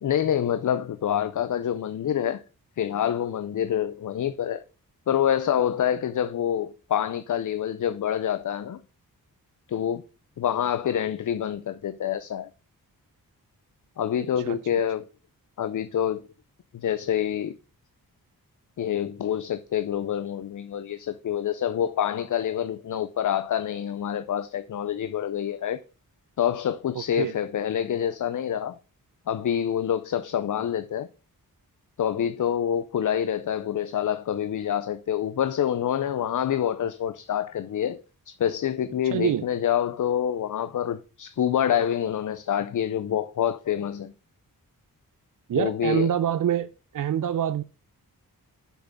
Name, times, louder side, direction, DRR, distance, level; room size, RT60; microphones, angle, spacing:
voice 1, 0.0-2.4 2.8-4.6 5.1-8.8 9.7-10.0 10.4-12.5 14.0-15.1 15.6-16.2 16.7-17.6 18.8-25.8 26.4-28.8 29.3-31.1 32.0-38.0 38.4-44.1 45.5-46.1, left 9 dB, 60° left, 0.5 m, -27 dB
voice 2, 27.0-27.3 39.1-39.4 45.5-46.7 46.9-47.6, right 10 dB, 60° right, 0.5 m, -25 dB
7.0 x 6.0 x 5.3 m
wide cardioid pair, 135°, 36 cm